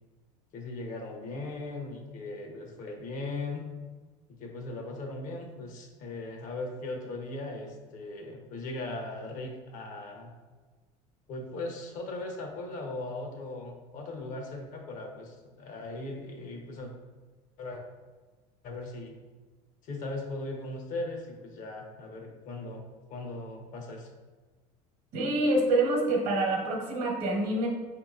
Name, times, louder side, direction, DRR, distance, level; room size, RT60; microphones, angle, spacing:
voice 1, 0.5-3.7 4.3-10.3 11.3-16.9 17.6-17.8 18.6-19.2 19.8-24.1, left 2 dB, 60° left, 2 dB, 0.8 m, -38 dB
voice 2, 25.1-27.7, right 2 dB, 65° right, 1 dB, 1.0 m, -26 dB
5.0 x 2.8 x 2.4 m, 1.3 s
supercardioid pair, 105°, 15 cm